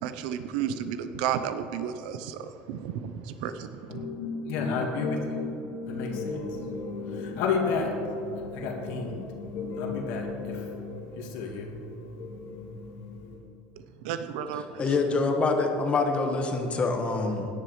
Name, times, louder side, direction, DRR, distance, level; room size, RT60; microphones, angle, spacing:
voice 1, 0.0-4.0 14.0-14.8, right 9 dB, 80° right, 9 dB, 0.6 m, -32 dB
voice 2, 3.9-13.4, left 4 dB, 70° left, 1 dB, 1.7 m, -32 dB
voice 3, 14.8-17.5, left 3 dB, 25° left, 4 dB, 1.3 m, -25 dB
17.0 x 10.5 x 3.2 m, 2.9 s
supercardioid pair, 130°, 5 cm